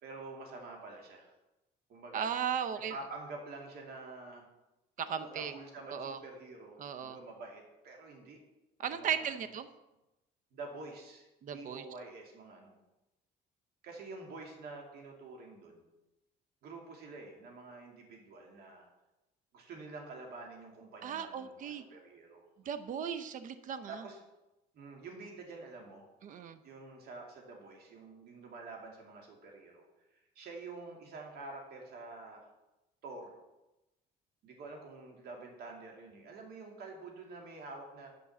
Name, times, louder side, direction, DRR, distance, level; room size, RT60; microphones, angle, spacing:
voice 1, 0.0-1.3 1.9-2.3 2.9-4.4 5.1-8.4 8.8-9.4 10.5-12.8 13.8-15.8 16.6-18.9 19.5-22.5 23.9-24.2 24.7-26.1 26.6-29.8 30.3-32.5 33.0-33.3 34.4-38.1, right 3 dB, 65° right, 1 dB, 2.5 m, -47 dB
voice 2, 2.1-2.9 5.0-5.5 5.9-6.2 6.8-7.2 8.8-9.7 11.4-11.8 21.0-21.8 22.7-23.9 26.2-26.6, right 8 dB, 50° right, 11 dB, 0.7 m, -36 dB
10.5 x 5.4 x 7.2 m, 0.97 s
cardioid pair, 110°, 17 cm